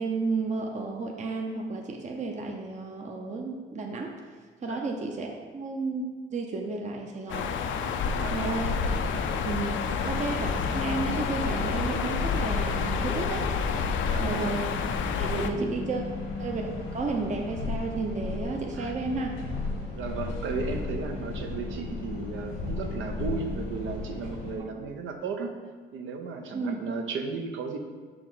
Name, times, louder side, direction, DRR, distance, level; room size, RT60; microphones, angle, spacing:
voice 1, 0.0-4.1 4.6-7.6 8.3-8.8 9.4-13.5 14.1-14.7 15.2-16.0 16.4-19.4 26.5-26.8, right 3 dB, 35° right, 2 dB, 0.7 m, -32 dB
sound 1, 7.3-15.5, left 6 dB, 75° left, 0.5 m, -29 dB
voice 2, 8.1-8.6 9.8-10.0 14.0-14.5 15.5-15.8 18.7-18.9 19.9-25.5 25.9-27.8, right 4 dB, 80° right, 4 dB, 0.8 m, -35 dB
sound 2, 8.7-24.6, left 3 dB, 90° left, 1.4 m, -36 dB
6.1 x 4.8 x 4.0 m, 1.5 s
cardioid pair, 90°, 20 cm